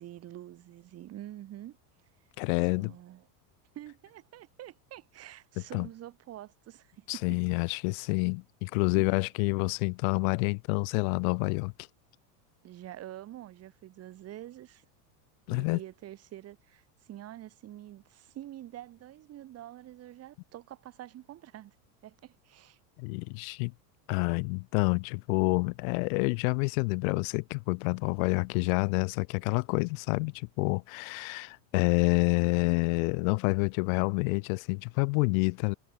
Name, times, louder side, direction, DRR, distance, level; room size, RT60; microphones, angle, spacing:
voice 1, 0.0-1.8 2.8-3.3 3.7-7.4 12.6-14.9 15.5-21.7 22.0-22.8, right 13 dB, 30° right, 7.9 m, -46 dB
voice 2, 2.4-2.9 5.7-5.9 7.1-11.7 15.5-15.8 23.0-23.7 24.1-35.7, left 33 dB, 55° left, 5.0 m, -28 dB
supercardioid pair, 170°, 49 cm